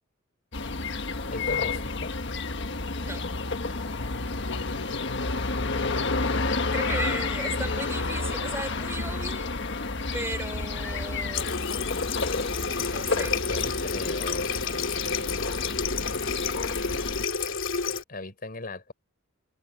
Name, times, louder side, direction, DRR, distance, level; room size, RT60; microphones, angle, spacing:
sound 1, 0.5-17.2, left 3 dB, 65° left, 1.4 m, -30 dB
voice 1, 1.3-2.1 6.3-7.9 13.5-15.4 18.1-18.9, left 2 dB, 45° left, 5.5 m, -39 dB
voice 2, 6.7-9.5 10.1-11.6 12.5-13.3, right 2 dB, 15° right, 5.6 m, -36 dB
Water tap faucet, 11.3-18.0, left 5 dB, 80° left, 2.4 m, -30 dB
head